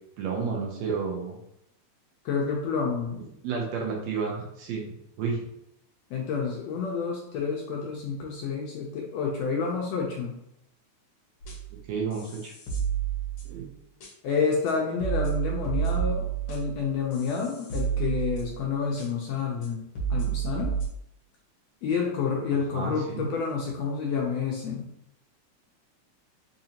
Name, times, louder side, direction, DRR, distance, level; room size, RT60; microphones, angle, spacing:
voice 1, 0.2-1.4 3.2-5.5 11.9-12.5 13.5-13.7 22.7-23.3, right 5 dB, 75° right, -1 dB, 1.8 m, -31 dB
voice 2, 2.2-3.2 6.1-10.3 14.2-19.8 20.1-20.7 21.8-24.9, left 5 dB, 75° left, -1 dB, 1.6 m, -29 dB
sound 1, 11.4-11.8 12.1-13.6 14.0-14.1 14.7-14.8 15.0-18.7 19.0-19.1 19.6-19.7 20.0-20.9, right 8 dB, 60° left, 1.7 m, -30 dB
5.0 x 2.6 x 2.8 m, 0.78 s
omnidirectional pair, 3.4 m